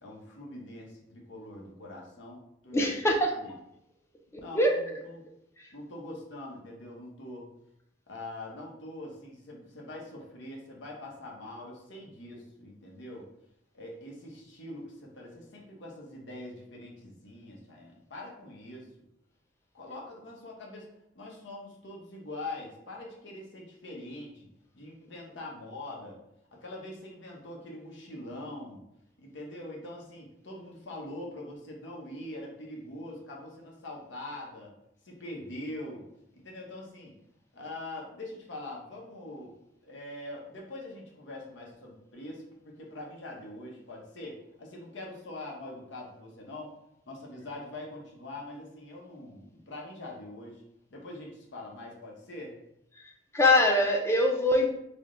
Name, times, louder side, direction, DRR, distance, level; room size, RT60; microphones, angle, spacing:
voice 1, 0.0-3.0 3.4-3.5 4.4-5.2 5.7-7.5 8.1-13.3 13.7-18.9 19.7-20.9 21.1-24.5 24.7-26.2 26.5-28.8 29.2-34.7 35.0-36.0 36.3-37.1 37.5-39.5 39.8-46.7 47.1-50.6 50.9-52.6, left 1 dB, 90° left, -2 dB, 0.8 m, -43 dB
voice 2, 2.7-3.4 4.3-4.9 5.6-5.7 53.0-53.1 53.3-54.7, left 1 dB, 15° left, 1 dB, 0.4 m, -24 dB
3.3 x 2.1 x 3.7 m, 0.81 s
head